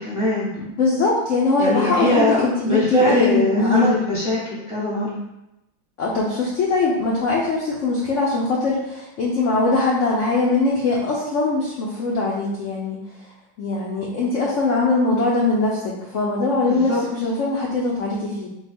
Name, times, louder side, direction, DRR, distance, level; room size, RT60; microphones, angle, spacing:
voice 1, 0.0-0.5 1.6-5.2 16.7-17.0, left 1 dB, 25° right, -8 dB, 0.7 m, -21 dB
voice 2, 0.6-4.0 6.0-13.0 13.6-18.5, left 3 dB, 65° left, -4 dB, 0.7 m, -21 dB
4.5 x 2.2 x 4.2 m, 0.90 s
omnidirectional pair, 2.0 m